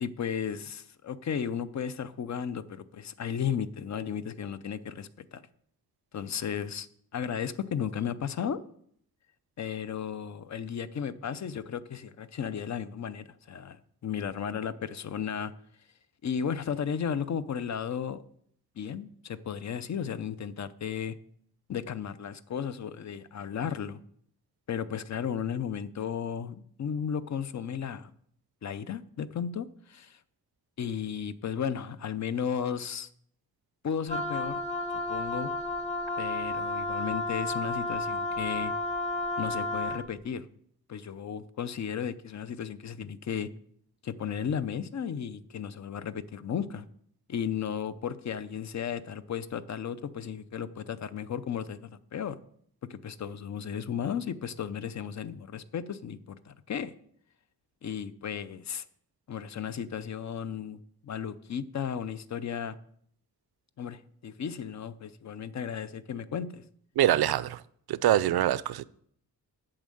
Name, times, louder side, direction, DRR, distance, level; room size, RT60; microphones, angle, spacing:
voice 1, 0.0-5.4 6.1-6.9 7.1-8.6 9.6-15.5 16.2-18.2 18.8-21.1 21.7-24.0 24.7-28.1 28.6-30.2 30.8-33.1 33.8-34.6 35.1-35.5 36.2-38.7 39.4-40.5 40.9-43.5 44.0-46.8 47.3-52.4 52.9-56.9 57.8-58.8 59.3-62.8 63.8-66.6, left 8 dB, 50° left, 0.5 m, -34 dB
Wind instrument woodwind instrument, 34.1-40.1, left 2 dB, 15° left, 1.0 m, -32 dB
voice 2, 67.0-67.6 67.9-68.8, right 12 dB, 80° right, 0.5 m, -24 dB
8.8 x 6.3 x 7.7 m
wide cardioid pair, 170°, 37 cm